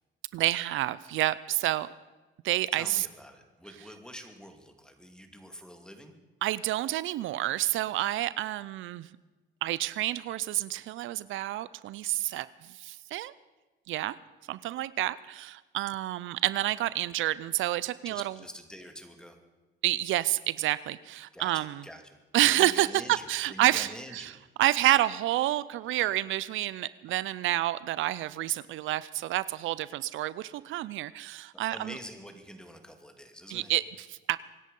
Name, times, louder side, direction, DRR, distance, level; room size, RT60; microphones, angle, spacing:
voice 1, 0.3-1.9 2.4-3.1 6.4-9.1 9.6-13.3 13.9-14.2 14.5-18.3 19.8-21.7 22.3-24.3 24.6-32.0 33.5-34.4, right 15 dB, 80° right, 18 dB, 0.5 m, -29 dB
voice 2, 2.7-6.2 18.0-19.4 21.3-22.2 22.5-24.4 31.7-33.7, equal, 5° left, 6 dB, 2.4 m, -46 dB
24.5 x 10.5 x 5.4 m, 1.2 s
cardioid pair, 90°, 20 cm